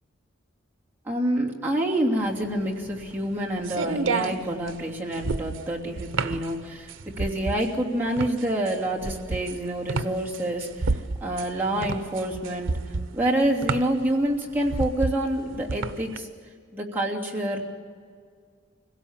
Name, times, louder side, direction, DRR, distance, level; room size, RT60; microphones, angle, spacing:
voice 1, 1.0-6.9 7.2-12.8 13.1-16.3 16.7-17.6, right 1 dB, 10° right, -4 dB, 2.9 m, -27 dB
sound 1, 2.3-16.2, right 3 dB, 90° right, 0.7 m, -31 dB
25.5 x 17.0 x 7.4 m, 2.1 s
head